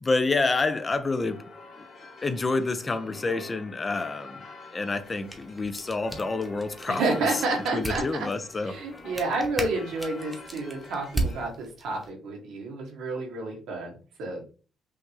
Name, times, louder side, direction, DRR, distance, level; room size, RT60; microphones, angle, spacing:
voice 1, 0.0-1.4 2.2-4.4 4.7-7.0 7.3-7.4 7.7-8.8, left 3 dB, 30° left, 0.6 m, -28 dB
sound 1, 1.1-11.5, left 3 dB, 50° left, 1.7 m, -47 dB
sound 2, 5.0-12.1, right 2 dB, 10° right, 1.0 m, -37 dB
voice 2, 6.9-8.3 8.6-13.9 14.2-14.4, right 3 dB, 85° right, 1.4 m, -30 dB
5.6 x 2.7 x 3.2 m
cardioid pair, 90°, 0 cm